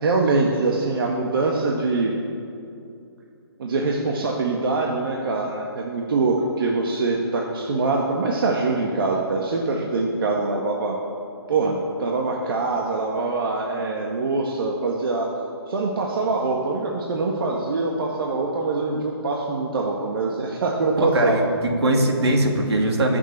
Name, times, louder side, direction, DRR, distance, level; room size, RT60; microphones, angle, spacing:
voice 1, 0.0-2.1 3.6-11.0 11.5-15.3 15.7-21.4, right 3 dB, 55° right, -1 dB, 1.7 m, -24 dB
voice 2, 21.1-23.2, right 1 dB, 75° right, 1 dB, 2.9 m, -21 dB
20.5 x 7.3 x 7.3 m, 2.6 s
hypercardioid pair, 160°, 14 cm